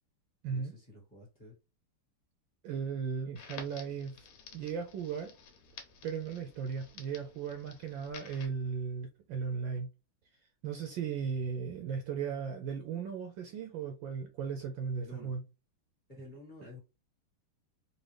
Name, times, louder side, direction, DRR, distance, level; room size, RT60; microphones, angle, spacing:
voice 1, 0.5-1.6 9.7-9.8 15.0-15.3 16.1-16.8, left 2 dB, 25° left, 1.5 m, -50 dB
voice 2, 2.6-4.3 4.5-5.3 6.0-9.9 10.6-15.4, right 6 dB, 75° right, 1.2 m, -36 dB
Crackle, 3.4-8.5, left 6 dB, 75° left, 1.7 m, -52 dB
4.2 x 2.5 x 3.2 m
omnidirectional pair, 2.4 m